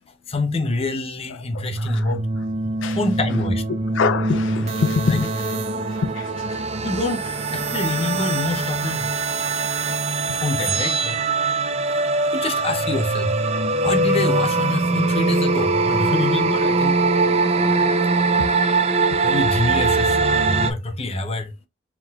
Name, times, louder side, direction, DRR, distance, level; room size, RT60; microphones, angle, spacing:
voice 1, 0.3-2.3 3.0-3.6 5.0-5.2 6.8-7.2 7.5-9.1 10.3-11.2 12.3-13.3 13.8-17.0 17.3-17.4 19.2-21.5, left 2 dB, 30° left, 0.7 m, -26 dB
voice 2, 1.5-2.1 2.8-3.0 3.9-5.6 5.8-6.6, left 5 dB, 70° left, 0.4 m, -25 dB
sound 1, 1.5-20.7, right 3 dB, 30° right, 0.5 m, -22 dB
4.7 x 3.8 x 2.3 m
head